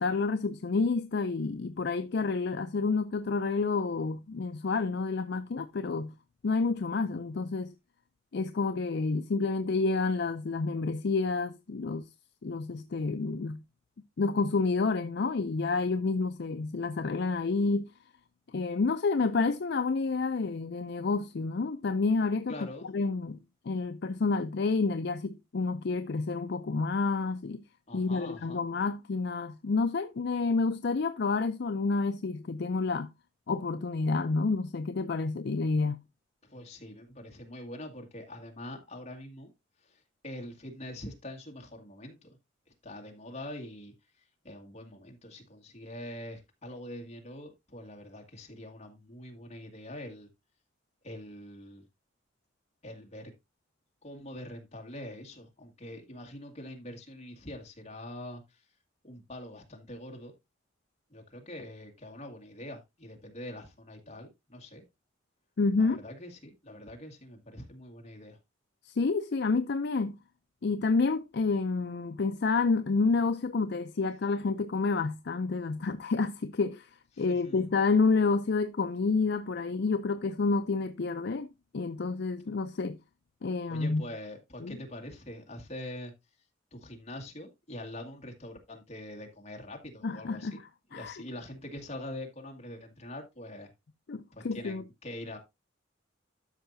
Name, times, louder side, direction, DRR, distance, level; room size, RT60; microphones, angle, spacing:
voice 1, 0.0-6.1 6.4-7.7 8.3-12.1 12.4-13.6 14.2-17.9 18.5-22.6 22.8-23.4 23.7-27.6 27.9-33.1 33.5-36.0 65.6-66.0 68.9-70.2 70.6-76.9 77.2-81.5 81.7-83.0 83.4-84.0 84.6-84.7 90.0-90.6 90.9-91.2 94.1-94.8, left 4 dB, 55° left, 0.5 m, -29 dB
voice 2, 22.5-22.9 27.9-28.6 36.5-39.5 39.8-42.4 42.8-43.9 44.4-50.3 51.0-51.9 52.8-53.3 54.0-58.6 59.0-60.3 61.1-64.8 65.8-68.4 77.2-77.7 83.7-86.1 86.7-90.6 90.9-93.7 94.3-95.4, left 1 dB, 35° left, 2.0 m, -44 dB
12.5 x 5.6 x 2.6 m
head